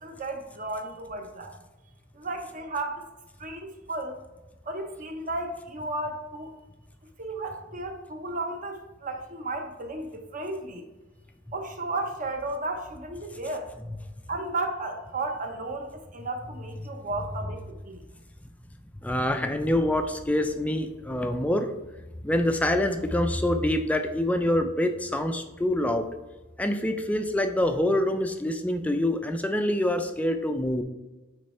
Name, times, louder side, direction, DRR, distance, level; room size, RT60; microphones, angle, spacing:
voice 1, 0.0-1.5 2.1-3.0 3.4-4.2 4.7-6.5 7.2-10.9 11.5-13.7 14.3-18.0, right 2 dB, 40° right, 4 dB, 0.9 m, -34 dB
voice 2, 19.0-21.7 22.2-26.1 26.6-30.8, left 1 dB, 5° left, 6 dB, 0.4 m, -26 dB
8.7 x 3.2 x 4.3 m, 1.1 s
head